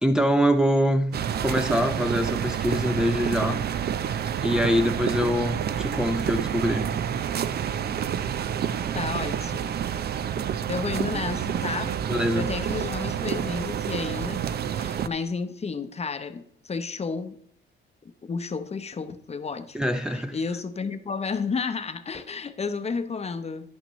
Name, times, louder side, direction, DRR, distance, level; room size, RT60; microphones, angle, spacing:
voice 1, 0.0-3.7 4.4-6.9 12.1-12.5 19.7-20.4, equal, 5° right, 0.5 m, -24 dB
sound 1, 1.1-15.1, right 9 dB, 55° right, 0.5 m, -28 dB
voice 2, 8.9-9.7 10.7-12.0 12.4-14.4 14.7-17.4 18.2-23.7, left 5 dB, 30° left, 0.8 m, -32 dB
10.5 x 8.9 x 3.1 m
cardioid pair, 90°, 20 cm